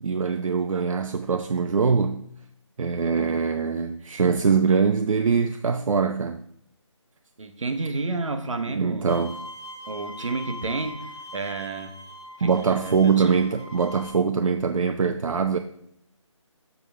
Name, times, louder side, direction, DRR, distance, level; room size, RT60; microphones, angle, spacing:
voice 1, 0.0-2.2 2.8-6.4 8.7-9.3 12.4-15.6, right 5 dB, 90° right, 8 dB, 0.5 m, -23 dB
voice 2, 7.4-9.1 9.9-11.9 12.4-13.3, right 3 dB, 75° right, 7 dB, 0.9 m, -31 dB
Bowed string instrument, 9.1-14.1, left 1 dB, 60° left, 1.2 m, -41 dB
6.9 x 6.2 x 3.3 m, 0.70 s
figure-of-eight pair, 170°, 16 cm